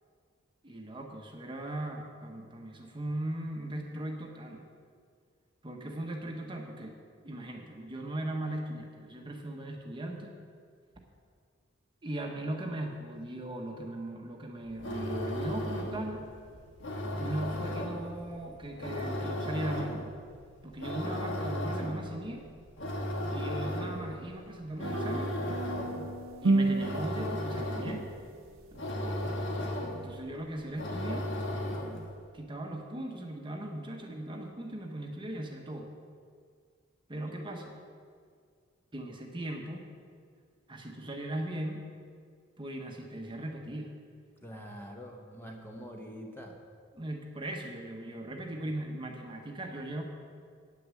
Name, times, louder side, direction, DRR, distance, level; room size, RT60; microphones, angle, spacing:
voice 1, 0.6-4.7 5.6-6.9 7.2-10.4 12.0-16.2 17.2-20.0 20.6-22.4 23.3-25.4 26.4-28.1 30.0-31.3 32.3-35.9 37.1-37.7 38.9-39.9 40.7-41.9 42.6-43.9 46.9-50.0, right 1 dB, 25° right, 2 dB, 1.0 m, -38 dB
sound 1, 14.7-32.1, left 1 dB, 60° left, 1.5 m, -36 dB
sound 2, 24.8-28.2, right 2 dB, 80° right, 0.6 m, -31 dB
voice 2, 28.9-29.4 37.2-37.4 44.4-46.6, equal, 10° left, 1 dB, 1.0 m, -45 dB
9.3 x 6.7 x 7.5 m, 2.1 s
head